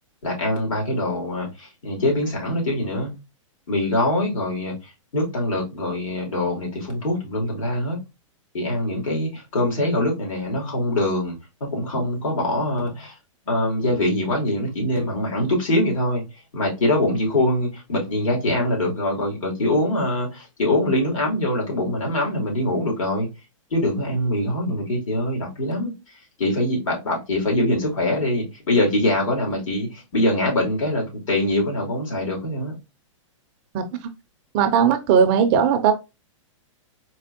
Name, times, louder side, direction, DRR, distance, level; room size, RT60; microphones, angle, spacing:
voice 1, 0.2-3.1 3.7-4.8 5.1-8.0 8.5-11.3 11.6-13.2 13.5-16.2 16.5-23.3 23.7-25.9 26.4-32.7, left 1 dB, 80° left, 2.7 m, -23 dB
voice 2, 34.5-35.9, right 7 dB, 25° right, 0.4 m, -18 dB
4.2 x 3.3 x 2.6 m
hypercardioid pair, 160°, 17 cm